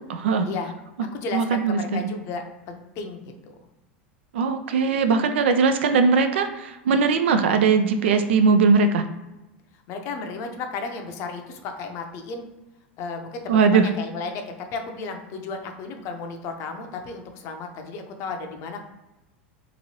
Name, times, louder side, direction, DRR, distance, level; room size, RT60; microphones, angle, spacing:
voice 1, 0.1-0.5 1.3-2.0 4.3-9.1 13.5-13.9, right 5 dB, 75° right, 9 dB, 0.3 m, -20 dB
voice 2, 1.1-3.6 9.9-12.5 13.0-14.4 14.7-18.8, left 4 dB, 50° left, 5 dB, 0.5 m, -34 dB
3.0 x 2.6 x 2.7 m, 1.0 s
hypercardioid pair, 95°, 6 cm